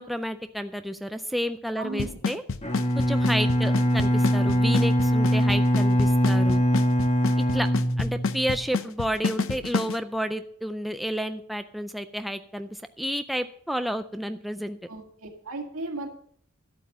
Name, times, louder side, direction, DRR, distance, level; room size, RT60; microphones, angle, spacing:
voice 1, 0.0-2.4 3.0-6.6 7.5-7.7 8.0-14.8, equal, ahead, 8 dB, 0.4 m, -31 dB
voice 2, 1.8-2.1 14.9-16.1, right 2 dB, 70° right, 3 dB, 2.0 m, -35 dB
Drum kit / Snare drum / Bass drum, 2.0-10.0, left 4 dB, 65° left, 0.7 m, -28 dB
Bowed string instrument, 2.6-8.6, equal, 30° left, 1.4 m, -22 dB
11.5 x 8.3 x 5.5 m, 0.63 s
head